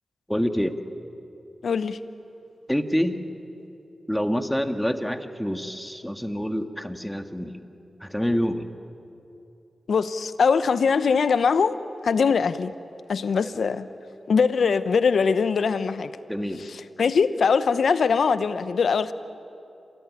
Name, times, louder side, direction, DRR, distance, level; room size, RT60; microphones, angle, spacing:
voice 1, 0.3-0.8 2.7-3.2 4.1-7.6 8.0-8.7 16.3-16.7, equal, 5° left, 6 dB, 1.9 m, -27 dB
voice 2, 1.6-2.0 9.9-11.8 12.0-12.7 13.1-13.9 14.3-16.1 17.0-19.1, left 5 dB, 75° left, 13 dB, 0.9 m, -22 dB
27.0 x 20.0 x 9.9 m, 2.8 s
cardioid pair, 40°, 0 cm